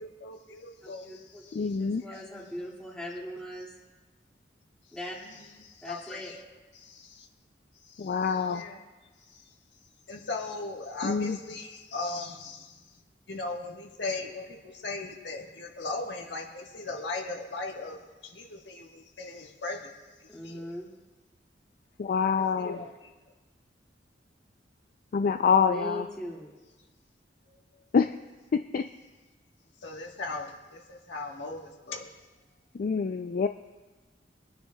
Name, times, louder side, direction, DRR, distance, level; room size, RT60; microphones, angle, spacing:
voice 1, 0.0-1.7 2.1-2.2 5.2-6.4 6.8-7.3 7.9-8.8 9.3-9.4 10.1-12.8 13.3-19.9 20.4-20.7 22.4-22.9 29.8-32.1, left 3 dB, 75° left, 1 dB, 1.4 m, -38 dB
voice 2, 0.8-3.7 4.9-5.2 5.8-6.3 20.3-20.9 25.7-26.5, left 1 dB, 5° left, -4 dB, 2.2 m, -40 dB
voice 3, 1.5-2.0 8.0-8.6 11.0-11.4 22.0-22.8 25.1-26.1 27.9-28.1 28.5-28.9 32.7-33.5, left 6 dB, 50° left, 7 dB, 0.4 m, -26 dB
25.5 x 9.7 x 2.3 m, 1.3 s
head